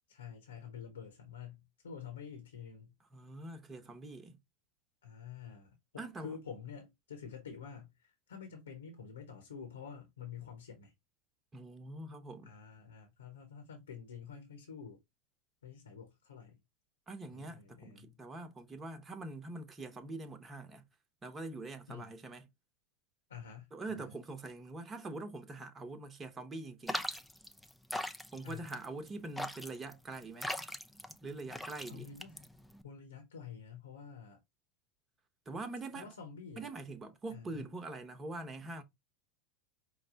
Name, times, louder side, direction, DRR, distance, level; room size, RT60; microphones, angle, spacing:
voice 1, 0.1-2.9 5.0-10.9 12.4-15.0 15.6-16.6 17.3-18.2 21.9-22.2 23.3-24.1 28.4-28.7 31.9-32.3 32.8-34.4 35.9-36.7 37.3-37.6, left 7 dB, 85° left, 1.1 m, -48 dB
voice 2, 3.1-4.4 6.0-6.4 11.5-12.5 17.1-20.8 21.2-22.5 23.7-27.1 28.3-30.5 31.2-32.1 35.5-36.1 36.6-38.8, right 2 dB, 25° right, 1.0 m, -44 dB
sound 1, 26.9-32.8, left 1 dB, ahead, 0.6 m, -40 dB
5.2 x 2.2 x 3.9 m
hypercardioid pair, 85°, 0 cm